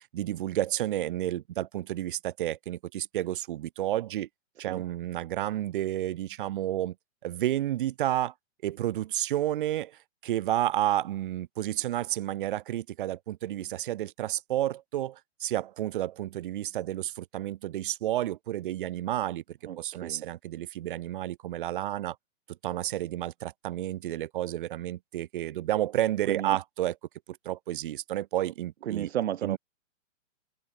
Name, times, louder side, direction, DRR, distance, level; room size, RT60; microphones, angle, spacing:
voice 1, 0.1-4.3 4.6-6.9 7.2-8.3 8.6-19.4 19.8-22.2 22.6-26.9 27.3-29.1 29.4-29.6, right 13 dB, 40° right, 2.6 m, -31 dB
voice 2, 19.7-20.2 26.3-26.6 28.8-29.6, right 11 dB, 55° right, 0.8 m, -33 dB
open air
hypercardioid pair, 165°, 39 cm